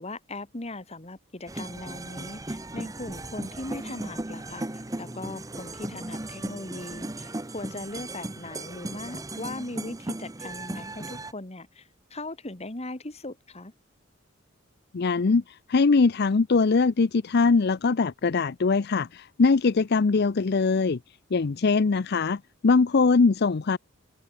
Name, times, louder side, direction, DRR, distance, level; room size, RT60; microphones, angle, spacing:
voice 1, 0.0-4.7 5.0-13.7, left 2 dB, 30° left, 2.0 m, -39 dB
sound 1, 1.5-11.3, right 2 dB, 15° right, 0.9 m, -36 dB
voice 2, 14.9-15.4 15.7-21.0 21.3-23.8, left 4 dB, 50° left, 0.5 m, -22 dB
head